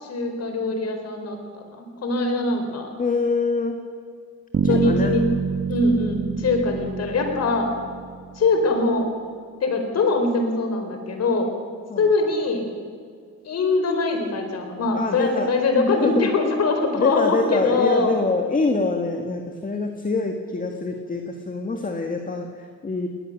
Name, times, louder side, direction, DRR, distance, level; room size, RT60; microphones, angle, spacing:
voice 1, 0.0-2.9 4.6-5.2 5.7-7.7 8.3-9.1 9.6-11.5 12.0-12.6 13.4-18.1, left 3 dB, 55° left, 5 dB, 4.5 m, -22 dB
voice 2, 3.0-3.8 4.6-5.1 11.9-12.1 15.0-15.5 15.9-16.3 16.9-23.1, left 3 dB, 25° left, 4 dB, 1.9 m, -25 dB
Bass guitar, 4.5-8.6, right 6 dB, 45° right, 1.5 m, -27 dB
20.0 x 20.0 x 6.7 m, 2.1 s
cardioid pair, 90°, 30 cm